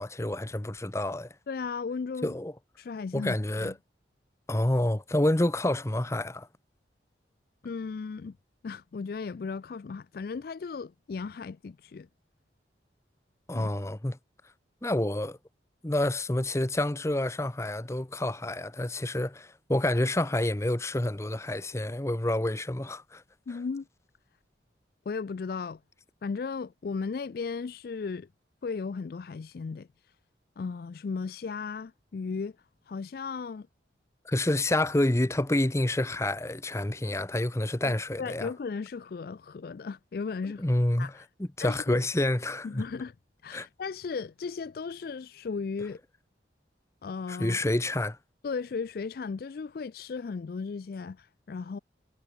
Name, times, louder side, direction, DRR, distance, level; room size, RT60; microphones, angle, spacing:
voice 1, 0.0-1.3 2.2-2.5 3.1-3.7 4.5-6.5 13.5-14.2 14.8-15.4 15.8-23.2 34.2-38.5 40.6-41.1 41.4-42.8 43.5-43.7 47.3-48.2, left 1 dB, 15° left, 0.7 m, -28 dB
voice 2, 1.5-2.4 2.8-3.7 7.6-8.4 8.6-12.1 13.5-13.7 23.5-23.9 25.1-25.8 26.2-28.3 28.6-29.9 30.6-32.6 32.9-33.7 37.8-37.9 38.2-40.6 41.0-41.2 41.6-42.0 42.6-43.1 43.4-46.0 47.0-47.7 48.4-51.8, left 5 dB, 50° left, 0.3 m, -36 dB
head